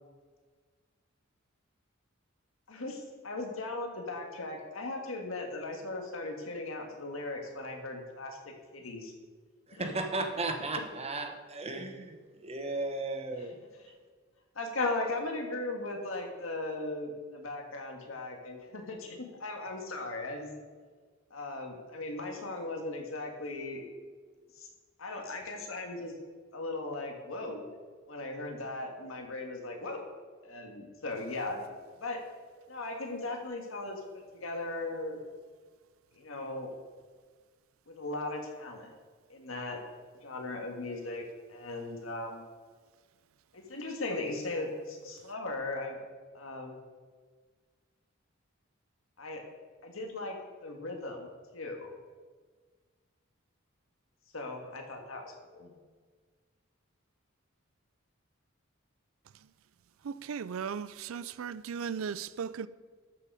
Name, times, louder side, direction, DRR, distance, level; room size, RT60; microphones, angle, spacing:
voice 1, 2.7-9.1 9.7-9.9 14.5-20.5 21.3-23.8 24.6-24.7 25.0-26.1 26.5-27.6 28.1-30.0 30.4-32.2 32.7-35.2 36.1-36.7 37.9-38.9 39.3-39.8 40.2-42.4 43.5-46.0 46.3-46.8 49.2-49.4 49.8-51.9 54.3-55.7, left 2 dB, 80° left, 1.8 m, -38 dB
voice 2, 9.7-13.6, right 2 dB, 30° right, 1.1 m, -35 dB
voice 3, 60.0-62.7, right 6 dB, 80° right, 0.4 m, -37 dB
12.5 x 6.8 x 4.9 m
head